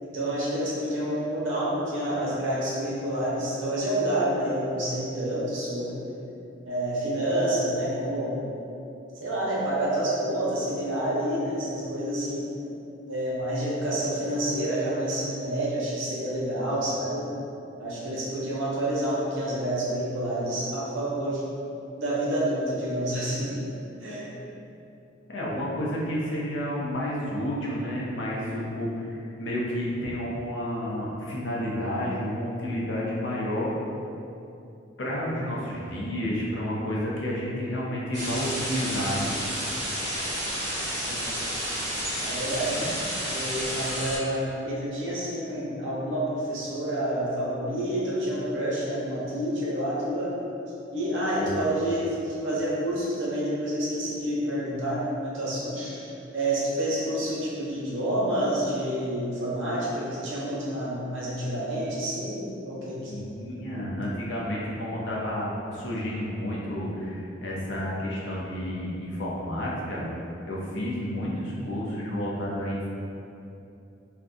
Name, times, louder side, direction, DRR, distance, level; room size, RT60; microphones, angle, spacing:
voice 1, 0.0-6.0 6.7-8.4 9.2-12.4 13.1-17.3 17.8-21.4 22.0-23.7 24.0-24.2 35.1-35.3 40.9-41.2 42.2-42.7 43.2-50.3 50.9-63.1, right 1 dB, 80° right, -6 dB, 0.8 m, -28 dB
voice 2, 25.3-33.7 35.0-39.3 42.7-42.9 51.4-51.6 63.1-70.0 70.5-72.9, equal, 65° left, -5 dB, 0.6 m, -30 dB
sound 1, 38.1-44.2, equal, 40° right, 1.2 m, -31 dB
2.6 x 2.2 x 3.7 m, 2.7 s
head